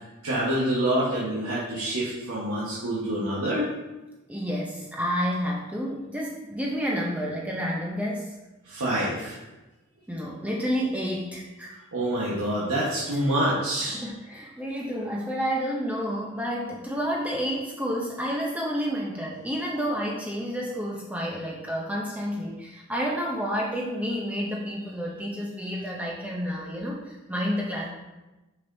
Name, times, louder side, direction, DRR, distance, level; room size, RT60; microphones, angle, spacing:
voice 1, 0.2-3.7 8.6-9.4 11.9-14.0, right 1 dB, 80° right, -7 dB, 1.3 m, -26 dB
voice 2, 4.3-8.3 10.1-11.7 13.8-27.9, equal, 5° right, -3 dB, 0.6 m, -30 dB
6.4 x 5.9 x 2.7 m, 1.1 s
head